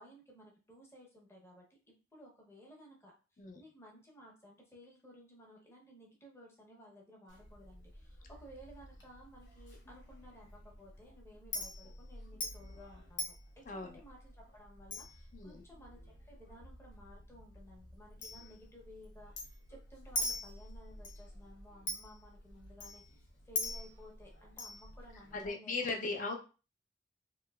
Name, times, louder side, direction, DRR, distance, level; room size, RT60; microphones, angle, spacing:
voice 1, 0.0-1.7 2.1-3.1 3.6-25.9, equal, 15° left, -2 dB, 0.8 m, -57 dB
Chink clink, 7.3-25.5, left 1 dB, 70° left, 0.8 m, -45 dB
voice 2, 13.7-14.0 15.3-15.6 25.3-26.4, left 3 dB, 45° left, 2 dB, 0.5 m, -38 dB
2.9 x 2.8 x 2.3 m, 0.34 s
head